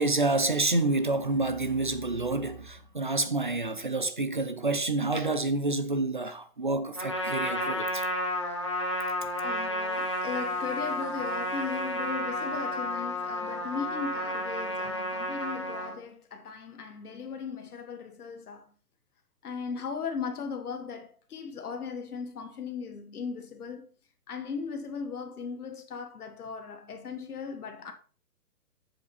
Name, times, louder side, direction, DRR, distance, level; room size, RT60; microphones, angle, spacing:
voice 1, 0.0-8.1, right 2 dB, 35° right, 0.5 m, -28 dB
Trumpet, 6.9-16.0, left 1 dB, 20° left, 0.6 m, -32 dB
voice 2, 9.4-18.7 19.4-23.9 24.3-27.9, left 5 dB, 70° left, 1.3 m, -37 dB
7.5 x 6.7 x 4.1 m
hypercardioid pair, 180°, 46 cm